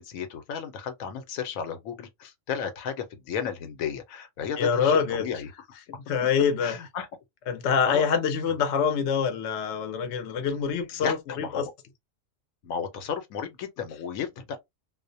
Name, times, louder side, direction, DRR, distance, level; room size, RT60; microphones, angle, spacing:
voice 1, 0.0-5.5 6.2-6.3 6.6-7.1 7.8-8.0 11.0-11.7 12.6-14.6, left 7 dB, 90° left, 1.1 m, -34 dB
voice 2, 4.6-5.2 6.1-6.8 7.5-11.7, left 6 dB, 65° left, 0.8 m, -25 dB
2.4 x 2.0 x 2.5 m
omnidirectional pair, 1.4 m